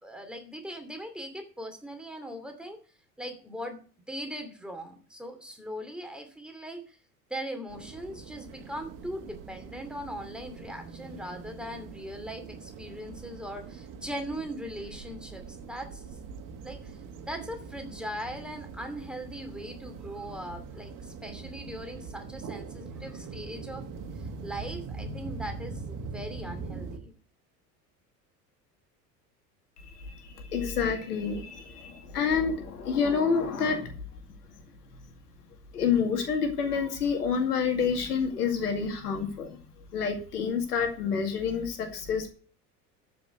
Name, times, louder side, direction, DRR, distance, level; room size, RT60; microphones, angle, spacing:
voice 1, 0.0-2.8 3.2-3.8 4.1-7.0 7.3-16.0 16.6-17.0 17.2-23.9 24.2-27.1, equal, ahead, 5 dB, 2.7 m, -40 dB
sound 1, 7.7-27.0, right 4 dB, 40° right, 2.0 m, -42 dB
voice 2, 30.0-33.9 35.7-39.6 39.9-42.3, left 6 dB, 70° left, 5 dB, 2.3 m, -28 dB
13.0 x 5.6 x 8.0 m, 0.39 s
figure-of-eight pair, 70°, 47 cm